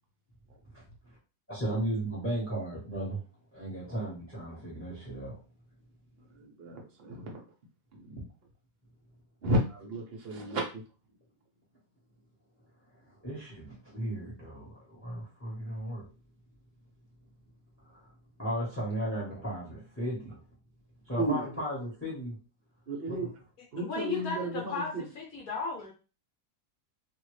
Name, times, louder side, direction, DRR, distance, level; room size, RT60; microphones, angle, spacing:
voice 1, 1.5-3.2 3.5-5.4 13.2-16.1 17.9-18.0 18.4-20.4 21.1-22.4 23.1-23.3, right 1 dB, 10° left, -6 dB, 1.0 m, -35 dB
voice 2, 6.6-7.4 9.4-10.6 21.2-21.4 22.9-23.3 23.7-24.5, right 1 dB, 50° right, 0 dB, 0.7 m, -31 dB
voice 3, 23.8-25.9, left 4 dB, 60° left, -1 dB, 1.1 m, -35 dB
2.7 x 2.5 x 3.1 m, 0.33 s
omnidirectional pair, 2.0 m